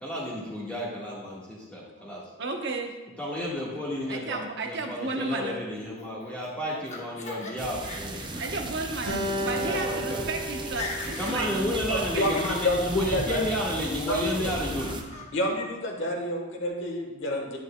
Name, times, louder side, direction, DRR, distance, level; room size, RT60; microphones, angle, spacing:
voice 1, 0.0-2.2 3.2-4.4 4.7-8.3 9.2-10.2 11.2-14.9, left 1 dB, 5° left, -7 dB, 1.5 m, -32 dB
voice 2, 2.4-2.9 4.1-5.6 8.4-12.2, right 2 dB, 50° right, 3 dB, 1.0 m, -33 dB
Laughter, 6.0-7.5 7.8-8.5 8.9-9.0 9.7-9.8 10.0-10.3 10.6-11.4 11.7-12.7 13.3-13.5 13.9-14.4 14.8-15.3, left 3 dB, 30° left, 1.0 m, -40 dB
sound 1, 7.6-15.0, right 2 dB, 20° right, 0.5 m, -37 dB
Acoustic guitar, 9.1-12.4, equal, 80° right, 2.4 m, -34 dB
voice 3, 11.9-13.6 14.1-14.5 15.3-17.6, left 1 dB, 55° left, 1 dB, 1.3 m, -29 dB
10.5 x 9.2 x 2.3 m, 1.2 s
head